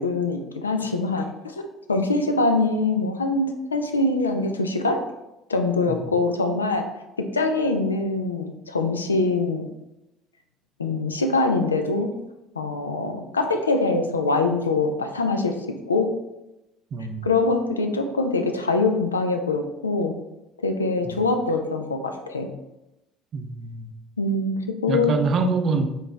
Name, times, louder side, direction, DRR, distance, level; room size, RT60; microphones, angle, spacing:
voice 1, 0.0-5.0 5.5-6.9 7.2-9.7 10.8-12.1 12.6-16.1 17.2-20.1 20.6-22.5 24.2-25.2, left 3 dB, 90° left, 6 dB, 0.4 m, -24 dB
voice 2, 16.9-17.3 21.0-21.2 23.3-23.9 24.9-26.0, right 4 dB, 45° right, 6 dB, 0.5 m, -25 dB
4.3 x 3.2 x 3.2 m, 0.94 s
figure-of-eight pair, 60°, 0 cm